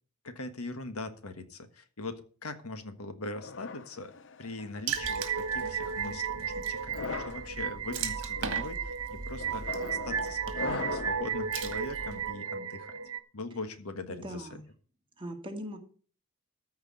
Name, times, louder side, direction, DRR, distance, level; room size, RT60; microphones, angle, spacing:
voice 1, 0.2-4.1 4.4-13.0 13.3-14.5, left 2 dB, 80° left, 9 dB, 1.4 m, -41 dB
sound 1, 3.4-4.8 5.6-5.9 6.8-7.4 8.1-8.4 9.4-11.3, left 4 dB, 55° left, 0.7 m, -40 dB
Water / Splash splatter, 4.9-12.3, right 5 dB, 60° right, 1.9 m, -40 dB
sound 2, 5.0-13.2, right 6 dB, 80° right, 1.1 m, -34 dB
voice 2, 14.1-14.6 15.2-15.8, equal, 25° right, 3 dB, 2.0 m, -40 dB
14.0 x 4.8 x 8.1 m, 0.42 s
head